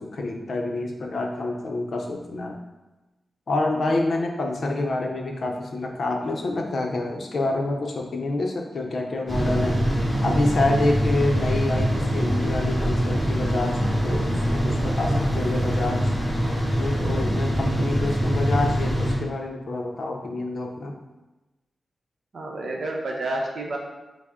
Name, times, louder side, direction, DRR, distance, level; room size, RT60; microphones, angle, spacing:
voice 1, 0.0-2.6 3.5-9.8 10.2-16.0 16.8-21.0, left 2 dB, 50° left, 1 dB, 0.5 m, -27 dB
sound 1, 9.3-19.2, equal, 10° right, 1.3 m, -24 dB
voice 2, 22.3-23.8, right 2 dB, 60° right, 0 dB, 0.7 m, -29 dB
5.9 x 2.0 x 3.6 m, 1.1 s
wide cardioid pair, 165°, 0 cm